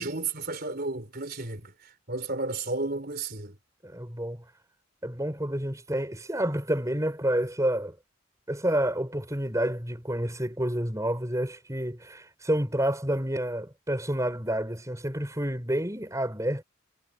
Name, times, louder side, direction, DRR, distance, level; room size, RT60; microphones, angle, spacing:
voice 1, 0.0-1.7 2.1-3.5, right 3 dB, 45° right, 3.9 m, -32 dB
voice 2, 3.8-4.4 5.0-8.0 8.5-16.6, right 1 dB, 15° right, 5.5 m, -29 dB
head